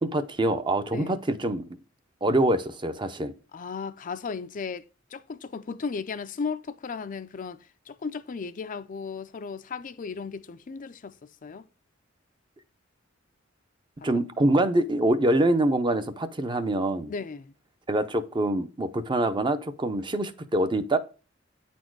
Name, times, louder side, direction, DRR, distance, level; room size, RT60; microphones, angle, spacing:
voice 1, 0.0-1.7 2.2-3.3 14.0-17.1 17.9-21.0, right 1 dB, 25° right, 0.6 m, -25 dB
voice 2, 3.5-11.6 14.1-14.2 17.1-17.5, left 5 dB, 40° left, 0.4 m, -36 dB
9.3 x 4.3 x 4.6 m
head